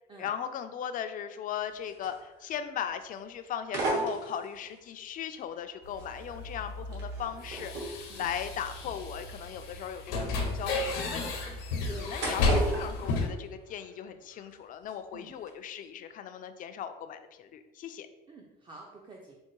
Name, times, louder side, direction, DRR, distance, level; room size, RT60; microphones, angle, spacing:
voice 1, 0.2-11.5 11.9-18.1, left 8 dB, 45° left, 9 dB, 0.4 m, -38 dB
sound 1, 1.6-2.6 2.9-3.2 3.6-4.8 5.4-14.1 14.3-15.0 15.3-15.5, right 2 dB, 60° right, 1.3 m, -37 dB
sound 2, 5.8-13.3, left 3 dB, 80° left, 0.8 m, -33 dB
voice 2, 11.8-12.6 15.1-15.3 18.3-19.4, right 3 dB, 25° right, -1 dB, 0.5 m, -47 dB
4.4 x 2.1 x 3.0 m, 1.1 s
supercardioid pair, 90°, 19 cm